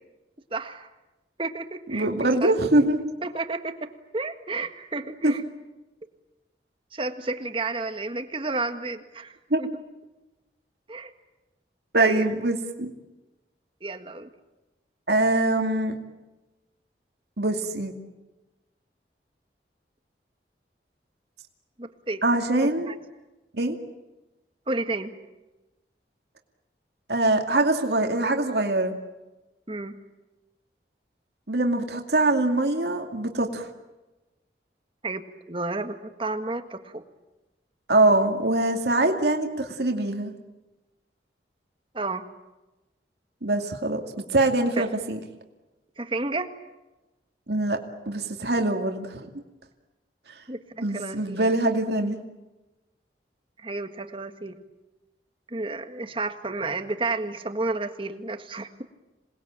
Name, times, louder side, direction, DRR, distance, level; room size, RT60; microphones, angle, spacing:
voice 1, 0.5-0.9 1.4-2.5 3.2-5.4 6.9-9.8 10.9-11.1 12.0-12.3 13.8-14.3 21.8-22.2 22.6-23.0 24.7-25.1 29.7-30.0 35.0-35.2 35.5-37.0 41.9-42.2 44.8-44.9 46.0-46.5 50.5-51.4 53.6-54.6 55.5-58.8, right 3 dB, 30° right, 8 dB, 1.7 m, -31 dB
voice 2, 1.9-3.0 5.2-5.3 9.5-9.6 11.9-12.9 15.1-15.9 17.4-17.9 22.2-22.9 23.5-23.8 27.1-28.9 31.5-33.7 37.9-40.3 43.4-44.0 44.3-45.2 47.5-47.8 48.1-49.3 50.3-50.4 50.8-52.2, right 2 dB, 70° right, 3 dB, 2.4 m, -23 dB
27.5 x 20.5 x 8.9 m, 1.1 s
head